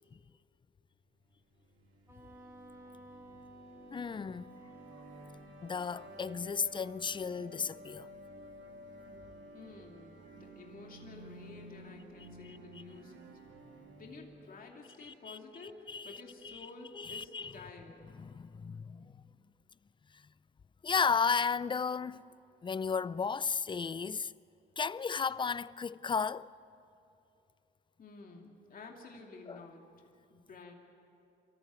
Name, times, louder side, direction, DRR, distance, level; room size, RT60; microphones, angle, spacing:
sound 1, 1.5-14.5, right 1 dB, 75° right, 3.0 m, -53 dB
Wind instrument woodwind instrument, 2.1-5.5, right 1 dB, 15° right, 2.9 m, -54 dB
voice 1, 3.9-4.5 5.6-8.1 15.0-15.4 15.9-16.2 16.4-16.6 16.9-17.5 18.2-19.1 20.8-22.2 22.6-24.3 24.8-26.5 29.5-29.6, left 5 dB, 25° left, 0.4 m, -34 dB
voice 2, 9.5-13.3 14.0-15.8 16.0-18.1 28.0-29.8 30.3-30.7, left 3 dB, 45° left, 2.6 m, -51 dB
26.0 x 14.0 x 9.4 m
cardioid pair, 90°, 20 cm